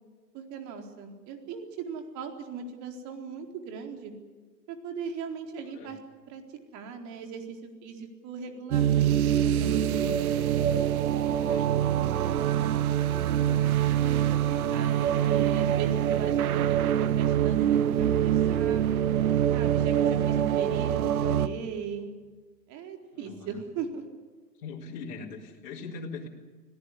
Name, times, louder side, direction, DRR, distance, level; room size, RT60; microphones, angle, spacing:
voice 1, 0.3-4.1 4.7-6.0 6.3-6.4 6.7-10.4 13.3-18.9 19.5-22.1 22.7-24.0, right 5 dB, 35° right, 4 dB, 4.2 m, -38 dB
voice 2, 5.6-5.9 11.3-11.7 15.1-15.3 23.1-23.6 24.6-26.3, left 4 dB, 55° left, -3 dB, 4.3 m, -42 dB
sound 1, 8.7-21.5, right 10 dB, 60° right, 1.4 m, -25 dB
25.5 x 17.5 x 9.8 m, 1.4 s
figure-of-eight pair, 110°, 50 cm